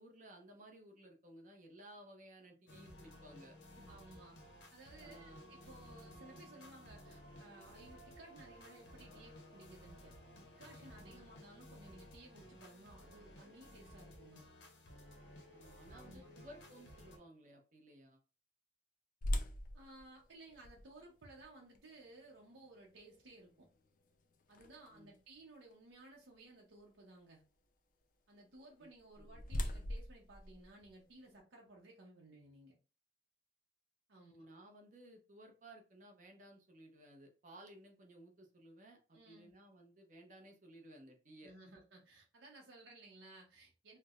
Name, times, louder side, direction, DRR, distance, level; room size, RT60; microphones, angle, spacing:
voice 1, 0.0-4.0 5.0-5.4 11.0-11.2 15.5-18.2 24.9-25.1 28.8-28.9 29.2-29.4 34.2-41.8, right 1 dB, 45° right, 3 dB, 0.7 m, -58 dB
sound 1, 2.7-17.2, left 1 dB, 80° left, 0.8 m, -56 dB
voice 2, 3.9-4.4 4.7-10.1 10.5-14.4 15.9-16.3 19.7-23.7 24.5-27.4 28.3-32.7 34.1-34.5 39.1-39.5 41.4-44.0, right 2 dB, 85° right, -1 dB, 0.7 m, -58 dB
sound 2, 19.2-25.2 25.7-25.8 26.4-26.6 28.7-31.4, left 1 dB, 45° left, 0.4 m, -43 dB
4.4 x 2.1 x 2.3 m, 0.34 s
head